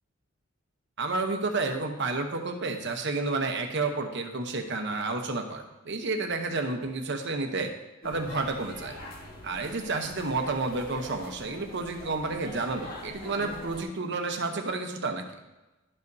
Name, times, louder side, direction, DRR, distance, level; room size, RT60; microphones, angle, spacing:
voice 1, 1.0-7.7 8.0-9.0 9.4-15.2, right 3 dB, 60° right, 5 dB, 0.9 m, -30 dB
sound 1, 8.0-13.8, left 1 dB, 45° left, 1.2 m, -44 dB
11.5 x 5.4 x 2.7 m, 1.1 s
head